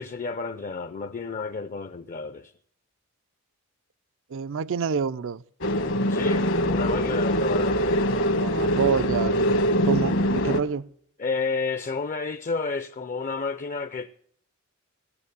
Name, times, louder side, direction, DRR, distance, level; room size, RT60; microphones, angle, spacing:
voice 1, 0.0-2.5 6.1-8.0 11.2-14.1, left 4 dB, 40° left, 0.5 m, -31 dB
voice 2, 4.3-5.4 8.3-9.5 9.8-10.9, right 6 dB, 65° right, 0.4 m, -27 dB
sound 1, 5.6-10.6, equal, 65° left, 1.2 m, -23 dB
16.0 x 7.2 x 6.8 m
head